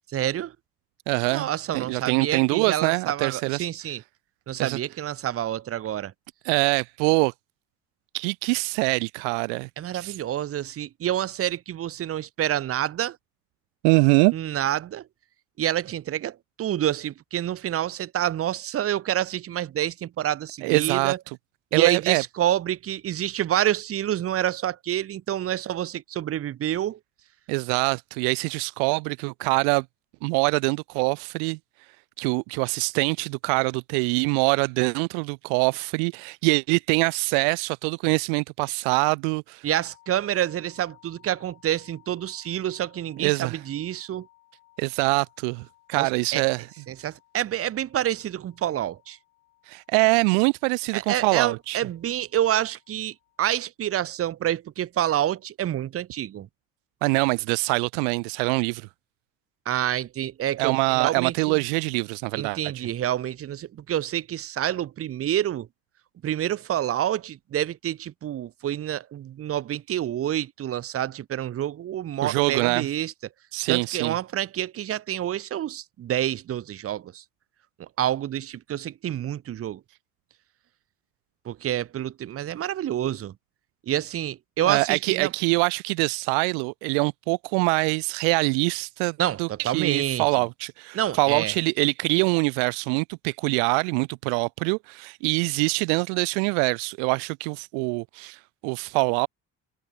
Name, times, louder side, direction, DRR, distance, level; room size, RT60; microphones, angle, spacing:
voice 1, 0.1-0.5 1.3-4.0 4.5-6.1 9.8-13.2 14.3-15.0 15.6-21.2 21.7-27.0 39.6-44.3 45.9-46.4 46.9-49.2 50.9-56.5 59.7-61.6 62.4-65.7 66.2-73.1 73.7-77.2 78.0-79.8 81.5-83.3 83.9-85.3 89.2-90.3 90.9-91.5, right 11 dB, 35° right, 0.7 m, -28 dB
voice 2, 1.1-1.5 1.7-3.7 4.6-4.8 6.5-7.3 8.1-10.1 13.8-14.3 20.6-21.1 21.7-22.2 27.5-29.8 30.2-31.6 32.2-39.7 43.2-43.6 44.8-46.7 49.7-51.8 57.0-58.9 60.6-62.6 72.2-72.9 73.5-74.1 84.7-99.3, right 40 dB or more, 70° right, 0.5 m, -24 dB
sound 1, 39.7-53.7, left 19 dB, 80° left, 6.6 m, -60 dB
hypercardioid pair, 60°, 41 cm